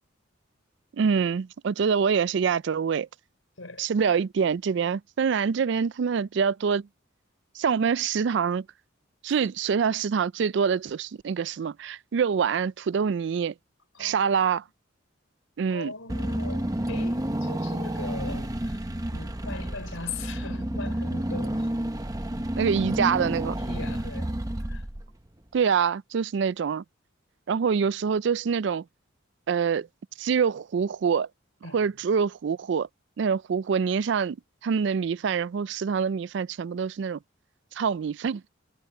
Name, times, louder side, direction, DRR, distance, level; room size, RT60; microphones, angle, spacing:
voice 1, 1.0-3.1 3.8-6.9 7.6-8.7 9.2-13.5 14.0-14.6 15.6-15.9 22.5-23.6 25.5-26.8 27.5-28.8 29.5-29.9 30.2-31.3 31.7-32.9 33.2-34.4 34.6-37.2 37.7-38.4, right 6 dB, 60° right, 0.3 m, -25 dB
voice 2, 3.6-4.2 9.3-9.4 13.9-14.6 15.7-18.8 19.1-21.7 23.6-24.9 31.6-32.1, left 4 dB, 90° left, 4.5 m, -41 dB
Car / Engine, 16.1-25.3, right 1 dB, 20° right, 0.9 m, -30 dB
head